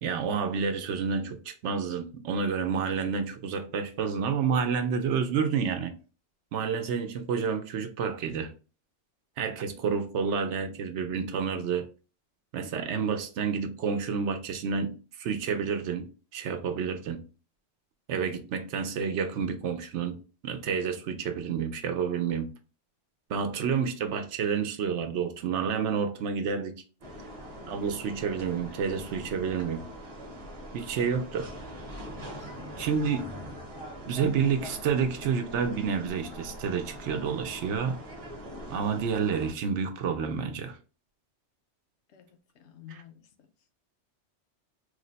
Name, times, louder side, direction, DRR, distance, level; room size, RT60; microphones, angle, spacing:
voice 1, 0.0-5.9 6.5-8.5 9.4-11.8 12.5-17.2 18.1-20.2 20.4-22.5 23.3-26.7 27.7-29.8 30.7-31.5 32.8-33.3 34.1-38.0 38.7-40.8, right 6 dB, 75° right, 0.9 m, -29 dB
sound 1, 27.0-39.5, equal, 35° right, 0.7 m, -42 dB
voice 2, 32.4-32.9 42.1-43.5, left 9 dB, 70° left, 0.9 m, -52 dB
3.2 x 2.1 x 3.9 m
omnidirectional pair, 1.2 m